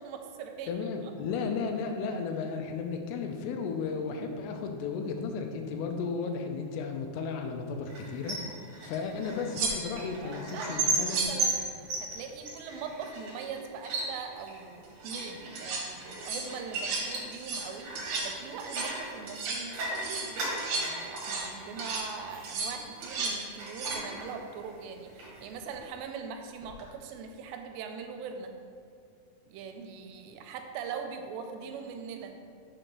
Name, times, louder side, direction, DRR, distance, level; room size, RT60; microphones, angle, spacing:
voice 1, 0.0-0.7 1.3-1.4 10.2-11.6 12.0-17.9 18.2-28.5 29.5-32.3, right 6 dB, 90° right, 5 dB, 2.8 m, -41 dB
voice 2, 0.7-8.4 8.8-11.2, left 5 dB, 80° left, 4 dB, 2.6 m, -34 dB
sound 1, 7.9-23.2 23.6-24.8 25.0-25.7, right 2 dB, 55° right, 2.3 m, -37 dB
sound 2, 8.9-9.0 9.5-10.1 10.9-11.5 14.8-15.2 15.6-15.8 16.1-16.5 16.7-17.1 17.3-17.7 18.0-18.3 18.6-19.0 19.3-19.6 20.0-21.5 21.8-22.1 22.4-23.4 23.7-24.0 26.6-26.8, right 4 dB, 70° right, 1.9 m, -34 dB
6.5 x 3.9 x 6.0 m, 2.4 s
omnidirectional pair, 4.9 m